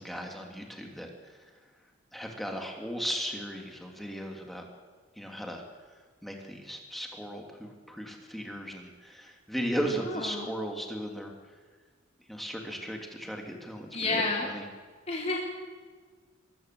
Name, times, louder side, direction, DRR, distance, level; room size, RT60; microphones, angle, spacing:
voice 1, 0.0-1.4 2.1-4.7 5.2-5.6 6.2-11.3 12.3-14.7, equal, ahead, 1 dB, 2.9 m, -36 dB
voice 2, 9.8-10.5 13.9-14.5 15.1-15.4, left 3 dB, 35° left, -3 dB, 3.6 m, -31 dB
23.5 x 14.5 x 7.8 m, 1.5 s
head